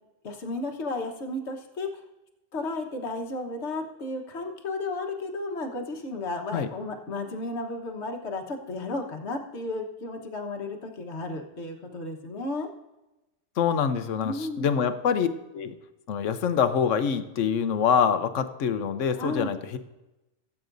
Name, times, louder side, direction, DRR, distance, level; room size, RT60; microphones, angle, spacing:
voice 1, 0.2-2.0 2.5-12.7 14.2-14.7 19.1-19.5, left 2 dB, 60° left, 3 dB, 1.5 m, -33 dB
voice 2, 13.6-15.3 15.5-15.7 16.1-19.8, left 7 dB, 80° left, 10 dB, 1.1 m, -25 dB
17.0 x 8.5 x 2.6 m, 0.99 s
omnidirectional pair, 1.3 m